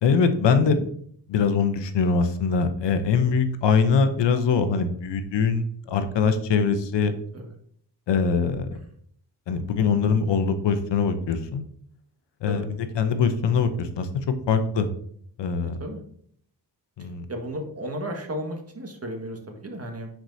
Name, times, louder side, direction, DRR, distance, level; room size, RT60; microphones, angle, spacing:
voice 1, 0.0-0.9 1.3-7.1 8.1-8.8 9.5-11.7 12.4-12.7 12.9-14.1 14.5-14.9 15.4-15.8 17.0-17.3, left 5 dB, 75° left, 9 dB, 0.9 m, -22 dB
voice 2, 15.6-16.0 17.0-20.1, equal, 35° right, 3 dB, 1.8 m, -34 dB
10.5 x 4.8 x 2.8 m, 0.64 s
cardioid pair, 70°, 42 cm